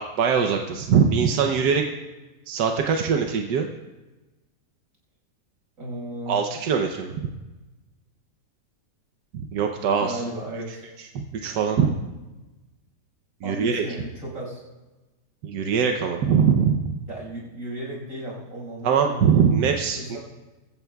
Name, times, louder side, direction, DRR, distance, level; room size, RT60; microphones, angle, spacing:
voice 1, 0.0-1.8 2.5-3.7 6.3-7.3 9.3-10.2 11.3-12.0 13.4-13.8 15.4-17.0 18.8-20.2, right 6 dB, 90° right, 3 dB, 1.4 m, -22 dB
voice 2, 5.8-6.4 10.0-10.8 13.4-14.6 17.1-19.4 19.9-20.2, right 1 dB, 55° right, -3 dB, 6.0 m, -35 dB
22.5 x 15.0 x 2.3 m, 1.1 s
omnidirectional pair, 1.7 m